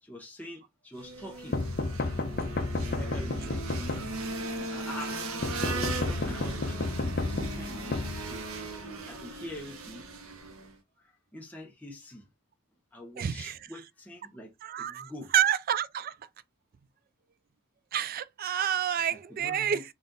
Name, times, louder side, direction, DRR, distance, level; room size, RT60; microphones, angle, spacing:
voice 1, 0.0-1.6 2.9-8.4 9.1-10.0 11.0-12.3 12.9-15.3 19.1-19.8, left 1 dB, 5° left, 0.8 m, -45 dB
sound 1, 0.9-10.8, right 2 dB, 80° right, 0.9 m, -38 dB
sound 2, 1.5-4.5 5.4-8.7, left 2 dB, 45° left, 0.5 m, -32 dB
voice 2, 13.2-13.6 14.6-16.1 17.9-19.8, right 9 dB, 45° right, 0.3 m, -29 dB
4.1 x 2.4 x 3.9 m
head